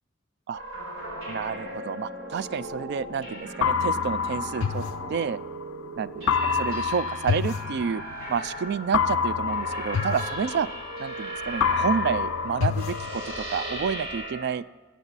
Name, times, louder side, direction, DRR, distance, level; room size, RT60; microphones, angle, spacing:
sound 1, 0.5-14.5, right 1 dB, 70° right, 3.9 m, -37 dB
voice 1, 1.3-4.8 5.1-5.4 6.0-8.0 8.3-10.7 11.0-14.6, right 6 dB, 55° right, 17 dB, 0.3 m, -29 dB
sound 2, 3.6-5.7 6.3-8.3 8.9-11.2 11.6-13.7, left 6 dB, 75° left, 0.4 m, -27 dB
20.0 x 8.2 x 4.1 m, 1.3 s
head